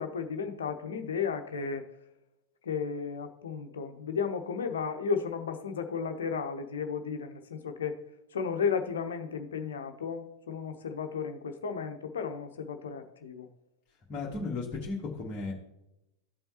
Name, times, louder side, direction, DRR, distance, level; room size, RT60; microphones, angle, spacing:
voice 1, 0.0-1.8 2.6-8.0 8.3-13.5, left 6 dB, 65° left, 6 dB, 0.9 m, -34 dB
voice 2, 14.1-15.5, left 3 dB, 25° left, -6 dB, 1.7 m, -35 dB
14.5 x 5.5 x 2.9 m, 0.88 s
figure-of-eight pair, 90°, 0 cm